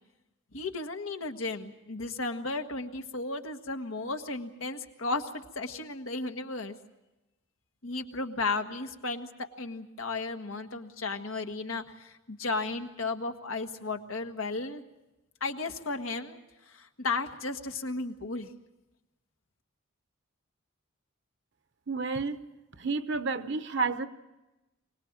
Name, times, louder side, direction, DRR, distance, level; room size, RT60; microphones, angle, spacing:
voice 1, 0.5-6.7 7.8-9.3 9.6-14.8 15.4-16.4 16.7-18.5, left 3 dB, 80° left, 5 dB, 1.6 m, -34 dB
voice 2, 21.9-22.4 22.8-24.1, right 4 dB, 60° right, 10 dB, 1.0 m, -30 dB
24.5 x 19.0 x 7.4 m, 0.99 s
head